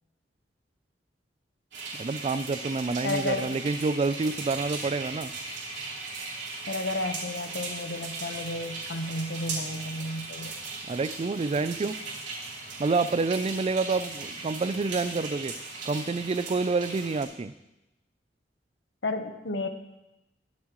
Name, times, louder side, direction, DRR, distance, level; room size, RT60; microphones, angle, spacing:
sound 1, 1.7-17.2, right 3 dB, 85° right, 3.3 m, -38 dB
voice 1, 2.0-5.3 10.9-12.0 12.8-15.5 15.8-17.5, right 3 dB, 35° right, 14 dB, 0.4 m, -28 dB
voice 2, 3.0-3.6 6.7-10.5 19.0-19.7, left 2 dB, 80° left, 7 dB, 1.0 m, -32 dB
21.5 x 7.4 x 3.1 m, 0.95 s
head